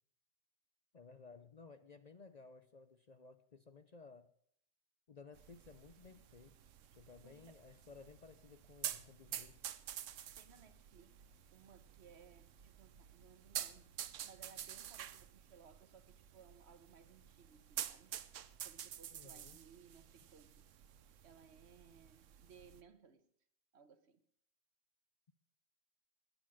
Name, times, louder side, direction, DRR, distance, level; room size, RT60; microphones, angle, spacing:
voice 1, 0.9-4.3 5.1-6.5 6.9-9.8 19.1-19.6, left 4 dB, 45° left, 0.6 m, -58 dB
sound 1, 5.3-22.8, right 10 dB, 90° right, 1.1 m, -49 dB
voice 2, 7.2-7.6 10.4-13.9 14.2-18.1 18.6-20.7 21.2-23.3 23.7-24.2, right 6 dB, 60° right, 1.3 m, -62 dB
19.0 x 7.9 x 6.3 m
omnidirectional pair, 1.3 m